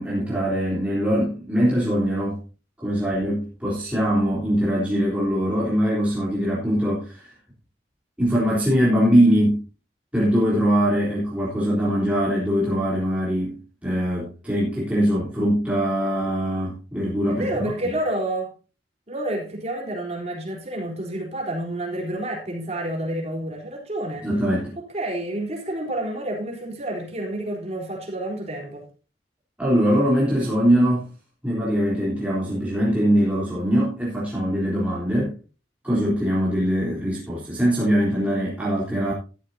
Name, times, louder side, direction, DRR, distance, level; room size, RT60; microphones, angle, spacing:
voice 1, 0.0-2.4 2.8-7.3 8.2-9.6 10.1-17.5 24.2-24.7 29.6-31.1 31.4-35.3 35.8-39.1, equal, 10° right, -7 dB, 3.6 m, -22 dB
voice 2, 17.3-18.5 19.1-24.3 24.8-28.9, right 1 dB, 35° right, -1 dB, 3.9 m, -29 dB
13.0 x 12.5 x 2.8 m, 0.35 s
head